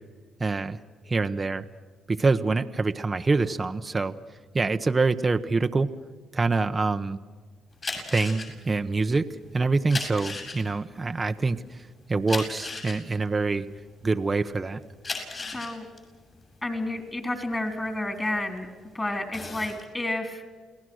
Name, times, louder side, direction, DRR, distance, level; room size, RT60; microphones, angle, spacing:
voice 1, 0.4-1.6 2.1-4.2 4.5-5.9 6.3-7.2 8.1-9.3 9.5-13.7 14.0-14.8, right 3 dB, 25° right, 7 dB, 1.0 m, -25 dB
sound 1, 7.7-14.3 14.8-18.7 19.1-19.8, left 3 dB, 35° left, 7.4 m, -36 dB
voice 2, 15.5-15.9 16.6-18.7 18.9-20.4, left 1 dB, 20° left, 6 dB, 3.9 m, -30 dB
29.5 x 18.5 x 6.4 m, 1.5 s
cardioid pair, 90°, 0 cm